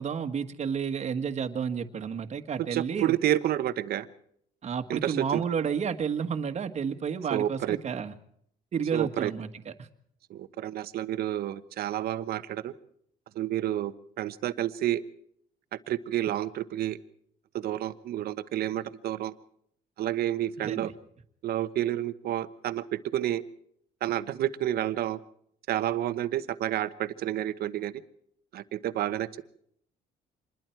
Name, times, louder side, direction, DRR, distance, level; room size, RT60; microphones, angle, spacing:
voice 1, 0.0-3.1 4.6-8.1 8.7-9.7 20.6-20.9, right 6 dB, 40° right, 8 dB, 1.7 m, -31 dB
voice 2, 2.7-4.1 4.9-5.4 7.3-7.8 8.9-9.3 10.3-12.7 13.3-15.0 15.7-17.0 17.5-19.3 20.0-20.9 21.4-23.4 24.0-25.2 25.7-28.0 28.5-29.4, right 12 dB, 65° right, 13 dB, 1.2 m, -30 dB
26.0 x 21.5 x 4.6 m, 0.68 s
cardioid pair, 110°, 17 cm